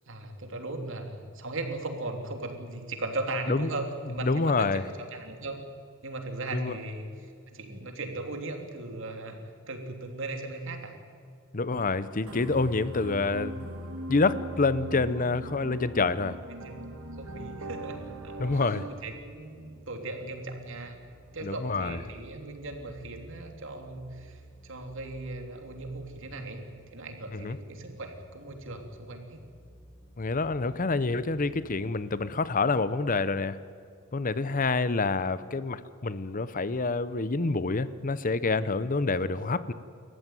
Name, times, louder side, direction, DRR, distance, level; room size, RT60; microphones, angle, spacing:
voice 1, 0.1-5.6 6.0-9.4 9.7-11.0 16.5-16.9 17.2-18.1 18.5-21.0 21.3-26.7 26.9-29.4 34.7-34.9 39.3-39.4, right 2 dB, 60° right, 4 dB, 3.2 m, -38 dB
voice 2, 4.2-4.8 6.5-6.7 11.5-13.7 14.1-16.4 18.4-18.8 21.4-22.0 27.3-27.6 30.2-33.6 34.1-39.7, left 3 dB, 40° left, 15 dB, 0.7 m, -27 dB
sound 1, 12.2-18.9, right 1 dB, 85° right, 2.3 m, -39 dB
sound 2, 16.8-34.2, equal, 5° left, 4.8 m, -54 dB
29.0 x 14.5 x 9.1 m, 2.3 s
head